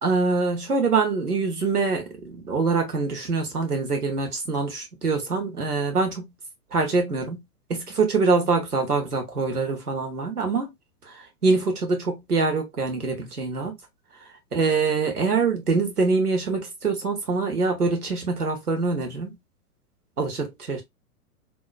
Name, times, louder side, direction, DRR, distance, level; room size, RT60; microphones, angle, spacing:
voice 1, 0.0-6.2 6.7-7.4 7.7-10.7 11.1-13.7 14.5-19.4 20.2-20.8, right 4 dB, 80° right, 1.1 m, -24 dB
2.9 x 2.2 x 2.3 m
figure-of-eight pair, 105°, 45 cm